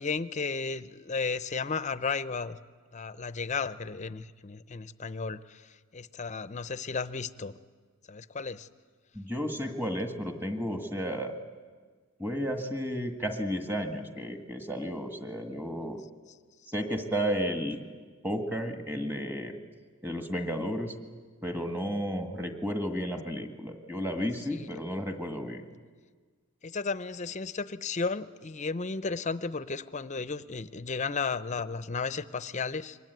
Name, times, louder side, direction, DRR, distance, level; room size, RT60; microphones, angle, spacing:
voice 1, 0.0-2.6 2.9-7.5 8.1-8.7 24.5-24.7 26.6-33.0, left 4 dB, 35° left, 14 dB, 0.6 m, -34 dB
voice 2, 9.1-11.3 12.2-16.0 16.7-17.8 18.2-19.6 20.0-20.9 21.4-25.7, equal, 10° right, 5 dB, 1.8 m, -33 dB
24.5 x 20.0 x 9.3 m, 1.5 s
head